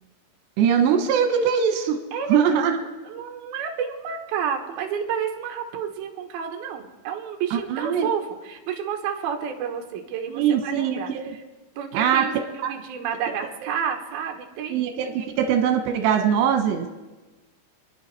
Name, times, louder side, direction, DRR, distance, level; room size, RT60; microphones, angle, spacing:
voice 1, 0.6-2.0 2.3-2.8 7.5-8.1 10.3-11.3 11.9-12.2 12.6-12.7 14.7-16.9, right 8 dB, 85° right, 4 dB, 3.3 m, -21 dB
voice 2, 2.1-2.4 3.0-11.4 11.8-12.3 12.6-15.3, right 7 dB, 70° right, 2 dB, 3.0 m, -30 dB
27.0 x 10.5 x 4.7 m, 1.2 s
omnidirectional pair, 4.8 m